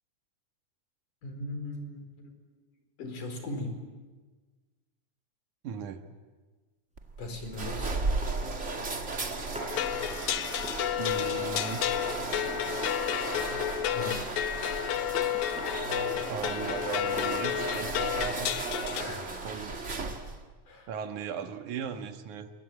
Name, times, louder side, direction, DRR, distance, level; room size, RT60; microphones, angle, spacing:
voice 1, 1.2-2.4 3.0-3.8 7.2-8.1 13.9-14.3 18.9-19.6 20.7-20.9, left 1 dB, 90° left, 5 dB, 6.0 m, -39 dB
voice 2, 5.6-6.0 11.0-11.9 16.3-18.6 19.4-19.9 20.9-22.5, right 7 dB, 75° right, 7 dB, 2.9 m, -37 dB
sound 1, 7.0-20.5, right 3 dB, 30° right, 1.7 m, -35 dB
sound 2, 7.5-7.7 8.2-8.4 9.6-9.7 10.5-11.1 11.9-12.7 14.3-14.6 15.3-15.8 16.7-16.8 17.1-17.6, equal, ahead, 5.8 m, -42 dB
sound 3, 9.7-19.0, left 12 dB, 75° left, 2.3 m, -31 dB
28.0 x 22.5 x 8.9 m, 1.4 s
omnidirectional pair, 3.6 m